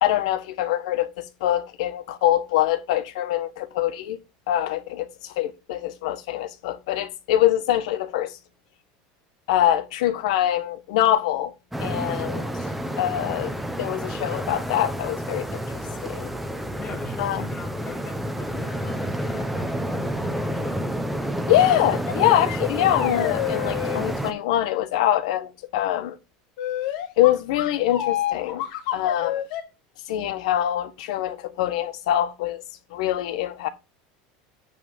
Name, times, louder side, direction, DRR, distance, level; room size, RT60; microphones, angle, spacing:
voice 1, 0.0-4.2 4.5-8.4 9.5-11.5 11.8-12.5 13.0-13.5 13.8-16.3 17.2-17.4 21.5-26.2 27.2-28.6 28.9-29.4 30.1-32.6 32.9-33.7, left 12 dB, 75° left, 1.2 m, -24 dB
sound 1, 11.7-24.3, equal, 5° right, 0.7 m, -29 dB
voice 2, 16.8-20.9, left 3 dB, 25° left, 2.3 m, -41 dB
sound 2, 22.1-22.2 22.5-24.1 26.6-29.6, left 12 dB, 60° left, 1.8 m, -28 dB
9.2 x 3.5 x 6.9 m
supercardioid pair, 165°, 4 cm